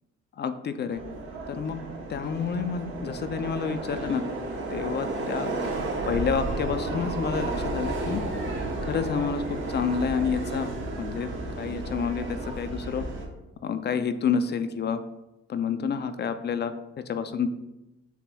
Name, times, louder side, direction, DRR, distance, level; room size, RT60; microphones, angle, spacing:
voice 1, 0.4-1.0 1.5-1.8 2.1-4.2 4.7-5.5 6.0-8.2 8.8-10.7 11.0-11.3 11.6-13.1 13.6-15.0 15.5-16.7 17.1-17.5, left 6 dB, 35° left, 10 dB, 0.4 m, -29 dB
Subway metro underground, 0.9-13.3, right 2 dB, 40° right, 0.9 m, -32 dB
7.0 x 2.9 x 2.2 m, 0.97 s
cardioid pair, 90°, 30 cm